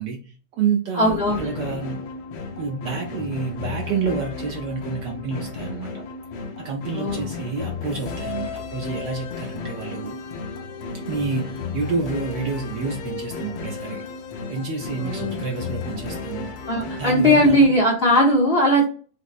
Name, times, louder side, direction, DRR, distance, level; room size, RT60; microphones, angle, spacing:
voice 1, 0.0-2.0 2.6-6.0 6.6-10.2 11.0-14.0 14.5-16.5 17.0-17.7, right 4 dB, 85° right, 2 dB, 0.9 m, -29 dB
voice 2, 0.9-1.8 6.9-7.3 11.1-11.2 15.0-15.4 16.7-18.8, equal, 60° left, -3 dB, 0.6 m, -19 dB
sound 1, 1.0-17.5, left 4 dB, 80° left, 1.6 m, -33 dB
5.0 x 2.0 x 2.4 m, 0.39 s
omnidirectional pair, 2.4 m